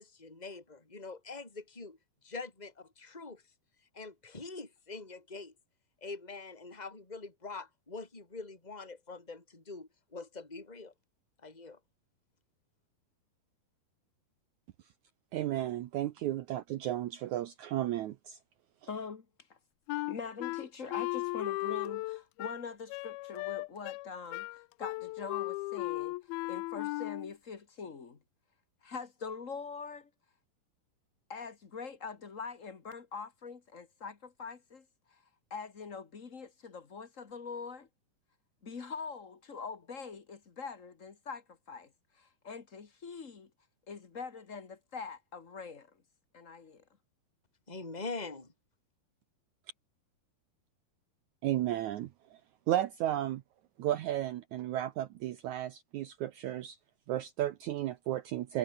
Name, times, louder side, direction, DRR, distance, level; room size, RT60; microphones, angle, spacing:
voice 1, 0.0-3.4 3.9-5.5 6.0-10.9 11.4-11.8 47.7-48.5, left 3 dB, 10° left, 4.3 m, -44 dB
voice 2, 15.3-18.4 51.4-52.1 52.7-53.4 53.8-56.8 57.1-58.6, right 13 dB, 85° right, 1.7 m, -33 dB
voice 3, 18.9-19.6 20.1-28.2 28.8-30.1 31.3-35.2 35.5-37.9 38.6-43.5 43.9-45.9 46.3-46.8, left 5 dB, 65° left, 0.7 m, -43 dB
Wind instrument woodwind instrument, 19.9-27.3, left 21 dB, 80° left, 2.4 m, -36 dB
omnidirectional pair, 4.5 m